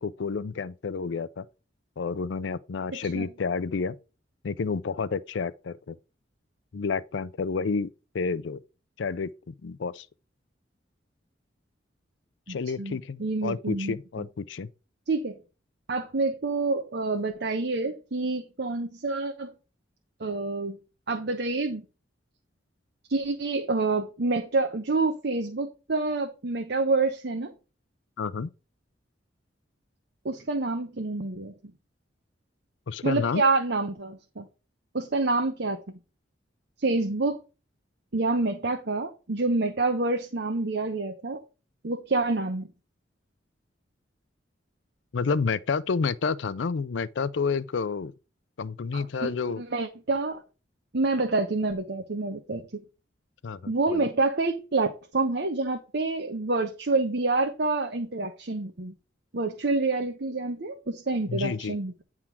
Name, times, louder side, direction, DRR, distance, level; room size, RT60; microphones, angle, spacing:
voice 1, 0.0-1.4 2.0-4.0 4.4-6.0 6.7-7.9 8.1-8.6 9.0-10.1 12.5-14.7 28.2-28.5 32.9-33.4 45.1-48.1 48.6-49.6 53.4-54.1 61.3-61.8, left 5 dB, 80° left, 0.5 m, -30 dB
voice 2, 2.9-3.3 12.5-14.2 15.1-15.4 15.9-19.5 20.2-20.8 21.1-21.8 23.1-27.5 30.2-31.5 33.0-34.4 34.9-35.8 36.8-37.4 38.1-41.4 41.8-42.7 48.9-50.4 50.9-52.8 53.7-58.9 59.3-62.0, right 3 dB, 60° right, 0.9 m, -27 dB
9.8 x 3.6 x 5.8 m
head